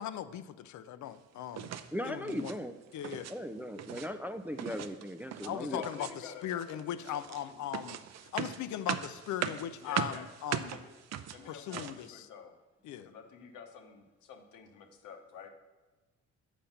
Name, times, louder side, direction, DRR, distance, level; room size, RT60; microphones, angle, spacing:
voice 1, 0.0-1.7 2.0-2.5 2.9-3.3 5.4-8.0 8.3-10.8 11.5-12.3 12.8-13.1, left 10 dB, 70° left, 13 dB, 0.5 m, -38 dB
sound 1, 1.5-1.9 2.2-2.6 2.9-3.3 3.6-4.1 4.6-5.6 5.8-6.3 6.6-12.1, right 9 dB, 60° right, 0.5 m, -39 dB
voice 2, 1.9-2.8 3.3-5.8, equal, 5° right, 6 dB, 0.3 m, -38 dB
voice 3, 5.7-7.6 9.8-10.3 10.7-10.9 11.3-12.6 13.0-15.5, left 6 dB, 90° left, 5 dB, 1.0 m, -48 dB
7.2 x 5.1 x 5.7 m, 1.2 s
cardioid pair, 90°, 30 cm